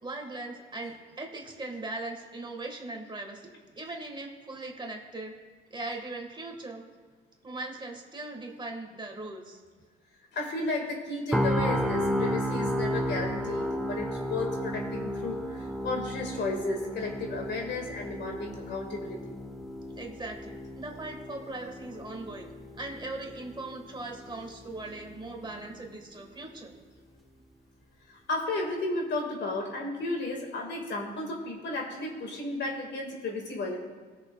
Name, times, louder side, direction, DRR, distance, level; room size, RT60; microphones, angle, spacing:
voice 1, 0.0-5.3 5.7-6.8 7.4-9.6 19.9-22.5 22.8-26.7, right 2 dB, 25° right, 2 dB, 1.7 m, -39 dB
voice 2, 10.3-19.4 28.1-33.8, left 2 dB, 65° left, 1 dB, 2.0 m, -33 dB
sound 1, 11.3-25.3 25.7-25.9, equal, ahead, 0.8 m, -33 dB
20.0 x 6.6 x 2.4 m, 1.4 s
cardioid pair, 90°, 20 cm